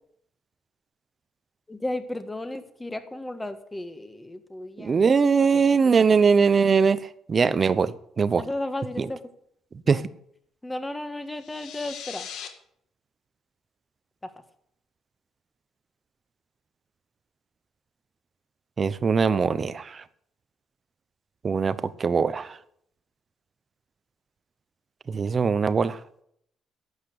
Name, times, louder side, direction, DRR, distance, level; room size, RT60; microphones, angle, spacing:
voice 1, 1.7-5.0 5.5-5.6 8.4-9.2 9.9-10.0 10.6-12.3, left 1 dB, 10° left, 1.4 m, -34 dB
voice 2, 4.8-8.5 9.0-9.1 9.9-10.1 18.8-20.0 21.4-22.6 25.1-26.0, right 5 dB, 30° right, 0.8 m, -21 dB
sound 1, 11.3-12.5, left 8 dB, 75° left, 2.1 m, -39 dB
12.0 x 8.2 x 8.0 m
cardioid pair, 125°, 0 cm